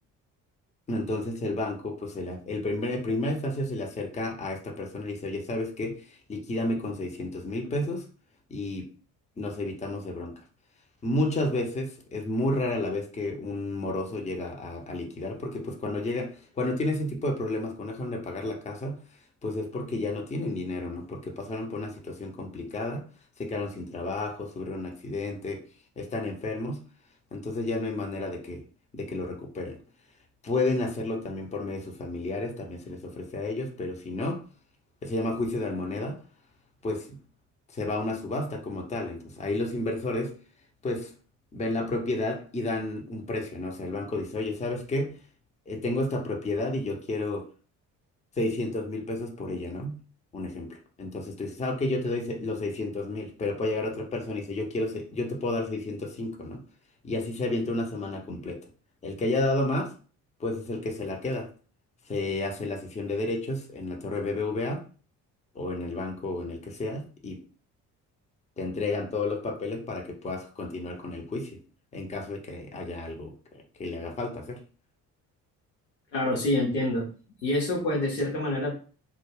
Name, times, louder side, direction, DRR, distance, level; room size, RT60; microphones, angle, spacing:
voice 1, 0.9-8.1 8.5-8.9 9.4-10.4 11.0-19.0 19.4-23.0 23.4-25.6 26.0-26.8 27.3-28.6 28.9-29.8 30.4-34.4 35.0-36.2 36.8-37.2 37.7-40.4 40.8-41.1 41.5-45.2 45.7-47.5 48.4-50.0 50.3-56.6 57.0-58.6 59.0-59.9 60.4-61.5 62.1-64.9 65.5-67.4 68.6-71.6 71.9-73.3 73.8-74.6, left 2 dB, 15° left, 2 dB, 0.6 m, -31 dB
voice 2, 76.1-77.1 77.4-78.7, left 1 dB, 85° left, -2 dB, 0.9 m, -26 dB
2.2 x 2.2 x 3.3 m, 0.38 s
figure-of-eight pair, 45°, 48 cm